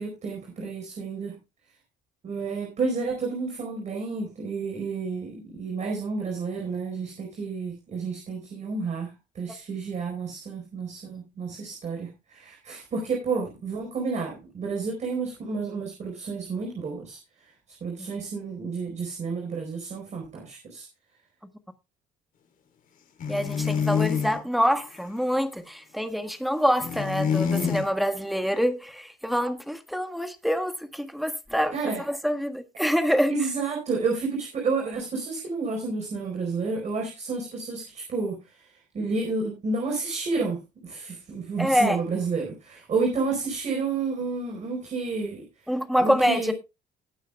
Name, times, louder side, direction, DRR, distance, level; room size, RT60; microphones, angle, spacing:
voice 1, 0.0-1.3 2.2-17.2 17.8-20.9 31.7-32.0 33.3-38.7 38.9-45.5 46.0-46.5, right 4 dB, 45° right, 4.4 m, -30 dB
sound 1, 23.2-24.4 26.8-27.9, left 7 dB, 55° left, 3.4 m, -26 dB
voice 2, 23.3-33.5 41.6-42.0 45.7-46.5, equal, ahead, 1.5 m, -26 dB
19.5 x 9.0 x 2.3 m
cardioid pair, 110°, 17 cm